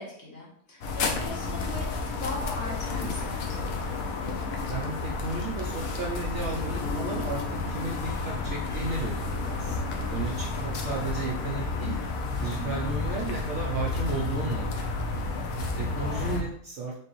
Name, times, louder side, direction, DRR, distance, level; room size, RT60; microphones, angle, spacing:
voice 1, 0.0-3.7 12.6-12.9 16.0-16.4, left 2 dB, 45° left, -4 dB, 1.2 m, -39 dB
sound 1, 0.8-16.4, left 3 dB, 70° left, 1.0 m, -31 dB
voice 2, 4.7-11.9 12.4-14.9 15.8-16.9, right 4 dB, 65° right, -2 dB, 0.7 m, -34 dB
Guitar, 6.8-12.8, left 3 dB, 20° left, 0.8 m, -44 dB
3.8 x 3.3 x 2.9 m, 0.63 s
omnidirectional pair, 1.6 m